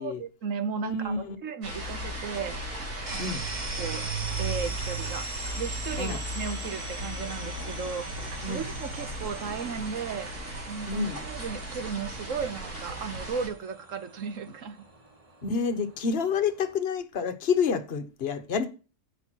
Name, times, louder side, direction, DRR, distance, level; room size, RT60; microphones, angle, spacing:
voice 1, 0.0-2.6 3.1-3.4 3.8-14.8, right 6 dB, 60° right, 1.3 m, -35 dB
voice 2, 0.8-1.4 3.2-3.4 6.0-6.2 8.4-8.6 10.9-11.2 15.4-18.7, left 5 dB, 45° left, 1.3 m, -28 dB
sound 1, 1.6-13.5, right 1 dB, 80° right, 4.9 m, -36 dB
sound 2, 3.1-16.8, right 2 dB, 25° right, 1.5 m, -42 dB
10.5 x 8.1 x 4.6 m
omnidirectional pair, 1.6 m